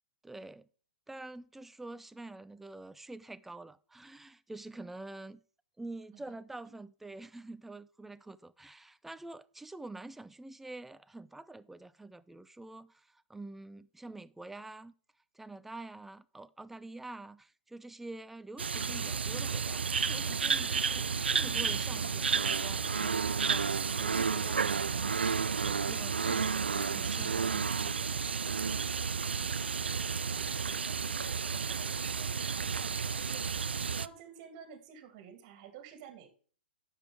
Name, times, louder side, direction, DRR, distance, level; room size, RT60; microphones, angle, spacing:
voice 1, 0.2-0.7 1.1-5.4 5.8-14.9 15.3-25.2 25.5-28.0, right 2 dB, 5° right, 0.4 m, -47 dB
sound 1, 18.6-34.1, right 6 dB, 75° right, 0.4 m, -31 dB
voice 2, 30.2-33.6 34.0-36.3, right 8 dB, 35° right, 2.6 m, -52 dB
10.5 x 7.2 x 3.4 m
figure-of-eight pair, 120°, 6 cm